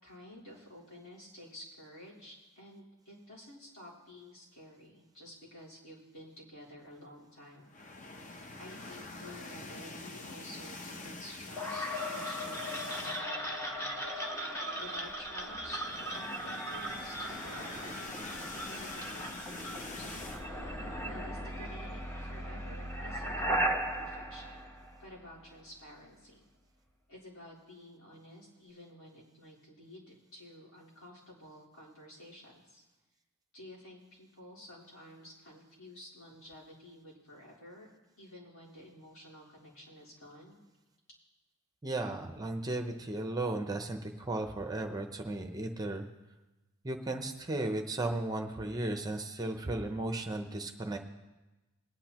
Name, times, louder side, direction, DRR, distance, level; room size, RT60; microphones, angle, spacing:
voice 1, 0.0-7.7 8.6-14.1 14.8-15.8 16.1-18.2 18.5-20.2 21.0-24.7 25.0-26.4 27.1-32.8 33.5-37.9 38.2-40.6, left 1 dB, 70° left, -6 dB, 4.1 m, -51 dB
sound 1, 7.6-13.5 13.8-14.0 14.3-14.4 15.4-20.5, left 2 dB, 35° left, 0.8 m, -45 dB
sound 2, 11.6-25.4, equal, 15° left, 1.0 m, -37 dB
voice 2, 41.8-46.0 46.8-51.0, right 2 dB, 15° right, 5 dB, 0.7 m, -35 dB
20.5 x 9.9 x 3.0 m, 1.1 s
head